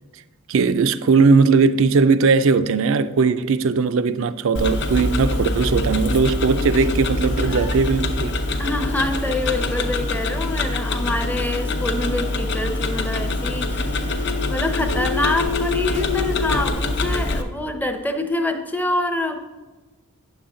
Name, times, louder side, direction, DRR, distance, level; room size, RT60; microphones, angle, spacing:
voice 1, 0.5-8.4, right 4 dB, 60° right, 0.4 m, -18 dB
Tick-tock, 4.5-17.4, left 2 dB, 50° left, 0.7 m, -24 dB
voice 2, 8.6-19.4, left 1 dB, 10° left, 0.6 m, -26 dB
sound 1, 12.8-16.7, left 11 dB, 75° left, 0.4 m, -29 dB
9.6 x 7.1 x 3.8 m
head